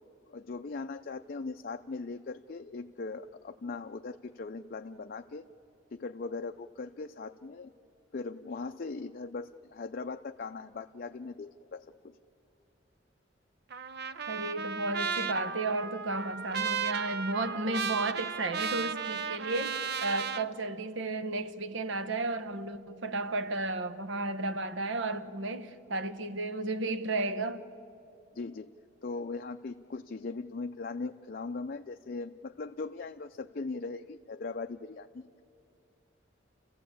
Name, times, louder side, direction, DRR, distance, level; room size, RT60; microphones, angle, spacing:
voice 1, 0.3-5.4 5.9-7.7 8.1-12.1 28.3-28.7 29.0-35.3, left 3 dB, 50° left, 0.5 m, -39 dB
Trumpet, 13.7-20.5, right 6 dB, 55° right, 0.6 m, -35 dB
voice 2, 14.3-27.7, right 2 dB, 70° right, 1.1 m, -33 dB
30.0 x 14.5 x 8.6 m
head